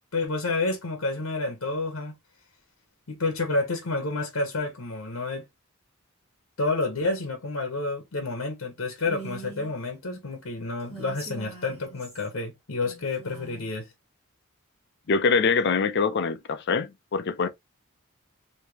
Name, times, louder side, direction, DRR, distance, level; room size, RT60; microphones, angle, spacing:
voice 1, 0.1-2.1 3.1-5.4 6.6-13.9, left 3 dB, 75° left, 0.9 m, -29 dB
Female speech woman speaking, 9.0-9.7 10.8-12.3 12.8-13.7, right 4 dB, 30° right, 1.4 m, -43 dB
voice 2, 15.1-17.5, left 5 dB, 50° left, 0.5 m, -24 dB
3.3 x 2.8 x 2.9 m
head